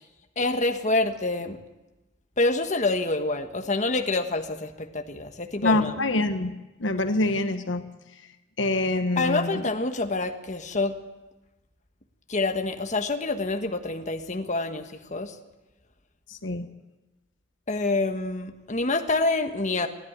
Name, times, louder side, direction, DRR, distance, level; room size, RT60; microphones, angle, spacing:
voice 1, 0.4-1.6 2.4-5.9 9.2-11.0 12.3-15.3 17.7-19.9, left 2 dB, 40° left, 5 dB, 1.4 m, -27 dB
voice 2, 5.6-6.5 6.8-7.8 8.6-9.6 16.4-16.7, left 2 dB, 75° left, 8 dB, 1.3 m, -25 dB
29.5 x 11.0 x 9.5 m, 1.1 s
head